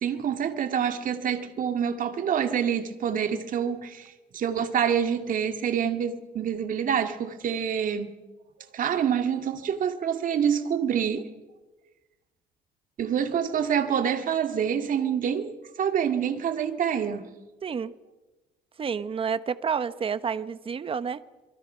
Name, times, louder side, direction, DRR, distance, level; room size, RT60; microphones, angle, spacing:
voice 1, 0.0-8.1 8.7-11.3 13.0-17.3, right 8 dB, 55° right, 2.2 m, -27 dB
voice 2, 17.6-17.9 18.8-21.2, right 6 dB, 35° right, 1.0 m, -29 dB
26.5 x 23.5 x 5.7 m
cardioid pair, 110°, 17 cm